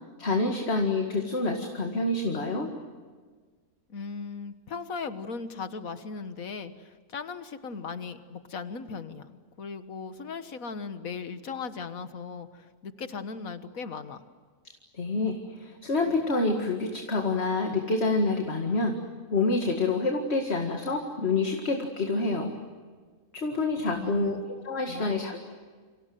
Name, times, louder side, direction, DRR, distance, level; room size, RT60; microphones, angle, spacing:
voice 1, 0.2-2.7 14.9-19.0 19.3-22.5 23.3-25.5, left 3 dB, 45° left, 3 dB, 2.2 m, -27 dB
voice 2, 3.9-14.2 23.9-24.5 24.9-25.2, left 5 dB, 65° left, 10 dB, 1.8 m, -38 dB
29.0 x 26.0 x 7.8 m, 1.5 s
omnidirectional pair, 1.6 m